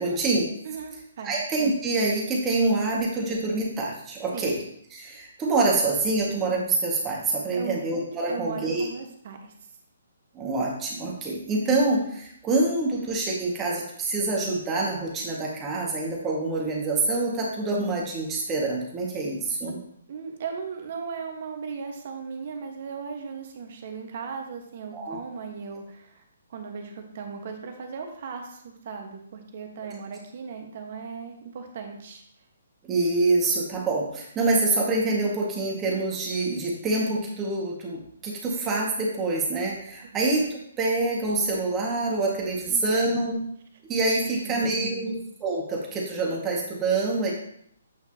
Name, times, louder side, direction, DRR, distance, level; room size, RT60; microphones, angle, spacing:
voice 1, 0.0-0.5 1.2-4.6 4.9-8.9 10.3-19.8 24.9-25.2 32.8-43.4 43.9-45.1 45.4-47.3, right 2 dB, 15° right, -3 dB, 2.0 m, -26 dB
voice 2, 0.6-1.4 4.3-4.5 7.5-7.8 8.3-9.5 19.7-19.8 20.1-26.2 26.5-32.2 40.1-40.2 42.7-43.0 44.3-45.2, right 5 dB, 50° right, 3 dB, 1.5 m, -37 dB
8.8 x 5.7 x 3.0 m, 0.70 s
figure-of-eight pair, 135°, 0 cm